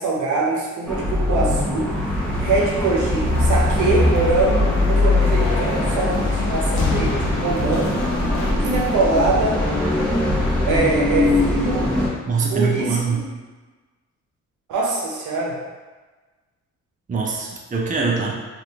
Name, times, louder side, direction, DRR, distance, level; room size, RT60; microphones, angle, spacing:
voice 1, 0.0-1.9 2.4-7.9 8.6-9.6 10.6-11.9 12.5-13.3 14.7-15.6, right 3 dB, 75° right, -3 dB, 0.8 m, -23 dB
sound 1, 0.8-12.1, left 2 dB, 5° left, 1.0 m, -21 dB
sound 2, 3.3-8.5, left 3 dB, 80° left, 0.7 m, -28 dB
voice 2, 12.3-13.3 17.1-18.3, right 5 dB, 25° right, -2 dB, 0.6 m, -23 dB
3.3 x 2.5 x 2.8 m, 1.3 s
cardioid pair, 90°, 30 cm